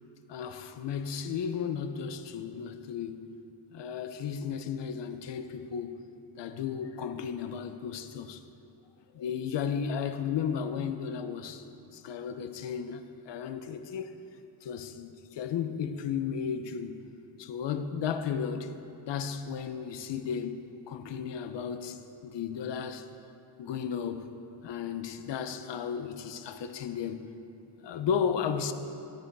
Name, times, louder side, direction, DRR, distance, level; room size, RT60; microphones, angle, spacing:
voice 1, 0.3-3.3 3.7-6.0 6.4-8.4 9.1-11.7 11.9-14.2 14.6-17.1 17.4-18.7 19.1-23.1 23.6-24.3 24.6-27.3 27.8-28.7, left 7 dB, 80° left, 0.9 m, -34 dB
14.0 x 13.0 x 4.7 m
wide cardioid pair, 170°, 42 cm